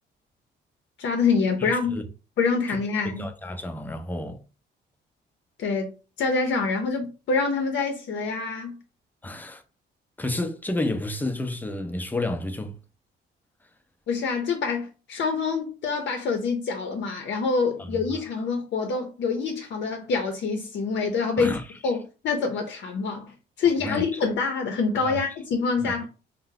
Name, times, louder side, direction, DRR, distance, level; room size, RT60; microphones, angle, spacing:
voice 1, 1.0-2.0 2.4-3.3 5.6-8.8 14.1-21.6 21.8-23.3 23.6-26.1, left 4 dB, 65° left, 0.6 m, -26 dB
voice 2, 1.6-2.0 2.7-2.8 3.2-4.4 9.2-9.6 10.2-12.8 17.8-18.0 21.4-21.6 23.8-24.0 25.0-25.2 25.8-26.0, left 1 dB, 10° left, 0.5 m, -31 dB
2.6 x 2.0 x 3.8 m
cardioid pair, 90°, 20 cm